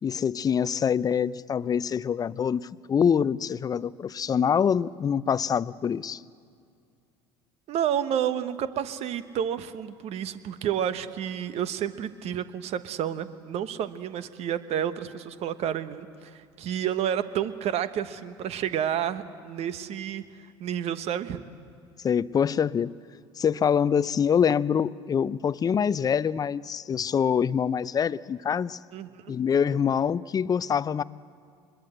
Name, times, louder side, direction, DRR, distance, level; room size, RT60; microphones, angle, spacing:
voice 1, 0.0-6.2 22.0-22.9 23.4-28.8 29.3-31.0, left 7 dB, 25° left, 18 dB, 0.5 m, -25 dB
voice 2, 7.7-21.4 28.9-29.4, right 9 dB, 50° right, 12 dB, 1.2 m, -30 dB
25.0 x 21.5 x 7.9 m, 2.3 s
hypercardioid pair, 70°, 14 cm